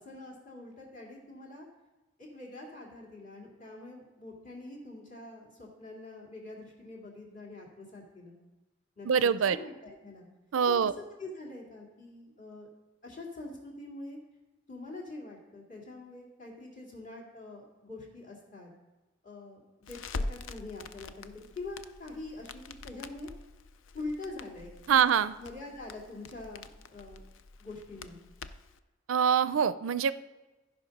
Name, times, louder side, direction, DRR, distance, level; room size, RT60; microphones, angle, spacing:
voice 1, 0.0-1.7 2.2-8.4 9.0-10.3 10.7-10.9 11.2-12.7 13.0-14.2 14.7-18.7 19.2-23.3 23.9-27.2 27.6-28.2, left 2 dB, 40° left, -2 dB, 2.4 m, -44 dB
voice 2, 9.1-9.6 10.5-10.9 24.9-25.3 29.1-30.1, right 7 dB, 90° right, 15 dB, 0.4 m, -24 dB
Crackle, 19.8-28.8, left 3 dB, 80° left, 0.5 m, -44 dB
13.5 x 5.3 x 5.3 m, 1.1 s
head